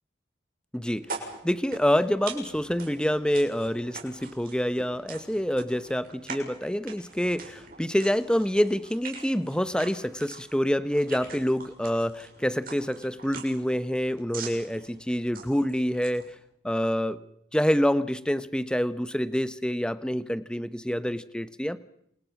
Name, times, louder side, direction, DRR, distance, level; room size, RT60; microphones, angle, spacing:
voice 1, 0.7-16.3 16.6-17.2 17.5-21.8, equal, 5° left, 13 dB, 1.0 m, -27 dB
sound 1, 1.0-16.4, right 5 dB, 50° right, 7.0 m, -44 dB
29.0 x 28.5 x 6.1 m, 0.72 s
head